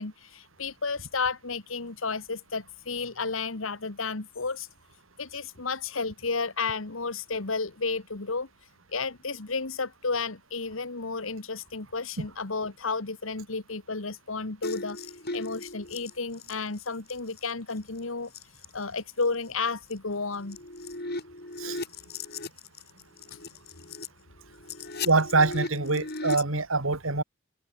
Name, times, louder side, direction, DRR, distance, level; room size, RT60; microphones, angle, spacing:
voice 1, 0.0-4.7 5.2-8.5 8.9-15.0 15.3-18.3 18.7-20.6 24.9-25.1, left 4 dB, 80° left, 1.7 m, -32 dB
sound 1, 14.6-17.5 17.8-18.0 18.3-18.7 19.2-19.3 19.9-20.0 20.3-24.1 24.5-26.4, left 3 dB, 50° left, 6.8 m, -37 dB
voice 2, 25.0-27.2, right 3 dB, 80° right, 2.6 m, -24 dB
open air
head